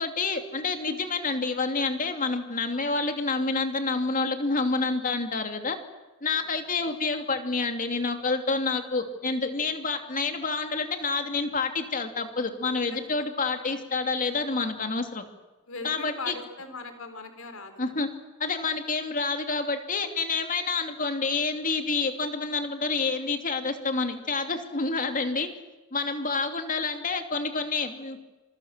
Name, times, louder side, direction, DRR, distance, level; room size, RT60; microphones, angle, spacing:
voice 1, 0.0-5.8 6.2-15.2 15.8-16.3 17.8-18.1 18.4-25.5 25.9-28.2, left 4 dB, 40° left, 6 dB, 2.8 m, -28 dB
voice 2, 15.7-17.9, left 3 dB, 80° left, 8 dB, 3.9 m, -39 dB
27.0 x 22.0 x 7.5 m, 1.2 s
head